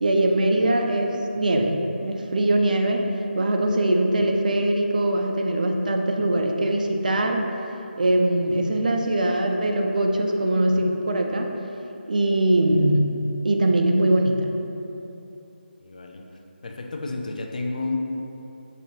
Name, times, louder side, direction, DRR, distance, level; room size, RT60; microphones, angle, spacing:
voice 1, 0.0-3.1 3.4-7.4 8.0-11.5 12.1-13.1 13.4-14.5, right 1 dB, 45° right, 2 dB, 0.4 m, -22 dB
voice 2, 15.8-16.2 16.6-18.0, left 3 dB, 45° left, 2 dB, 0.4 m, -31 dB
6.6 x 2.7 x 2.8 m, 2.9 s
figure-of-eight pair, 175°, 6 cm